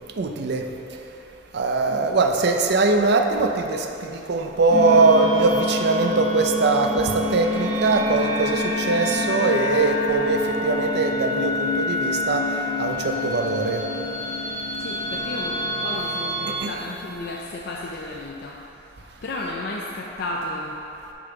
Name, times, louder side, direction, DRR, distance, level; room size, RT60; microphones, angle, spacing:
voice 1, 0.2-0.6 1.5-3.8 4.3-8.6 8.9-12.4 12.8-13.8 16.6-16.7, right 3 dB, 60° right, 4 dB, 0.5 m, -21 dB
sound 1, 4.7-16.6, left 2 dB, 40° right, 1.3 m, -27 dB
voice 2, 14.8-18.9 19.2-20.8, left 2 dB, 55° left, -2 dB, 0.4 m, -33 dB
6.2 x 4.1 x 5.7 m, 2.9 s
head